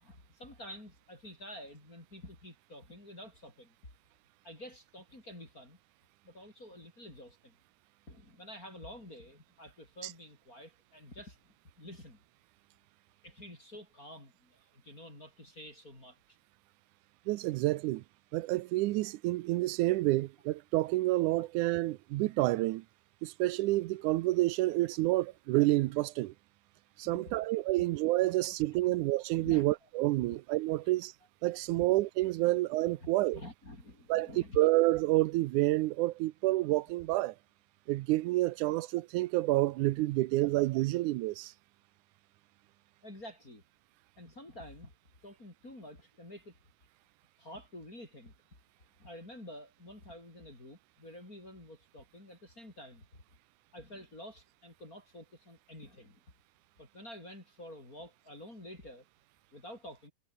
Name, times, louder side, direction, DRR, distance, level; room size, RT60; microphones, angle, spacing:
voice 1, 0.0-3.7 4.4-5.8 6.2-7.6 8.1-12.2 13.2-16.4 19.0-19.2 21.3-21.5 24.0-24.1 27.0-27.5 28.8-29.9 30.3-30.4 31.8-31.9 32.5-32.6 33.0-34.6 38.7-38.8 43.0-43.6 44.2-44.9 45.2-46.6 47.4-48.3 49.0-53.1 53.7-56.2 56.8-59.1 59.5-60.1, left 1 dB, 20° left, 7.3 m, -49 dB
voice 2, 17.3-18.0 18.3-22.8 23.2-26.3 27.0-31.1 31.4-33.4 34.1-34.3 34.6-37.4 37.9-41.5, right 18 dB, 80° right, 1.9 m, -29 dB
omnidirectional pair, 4.0 m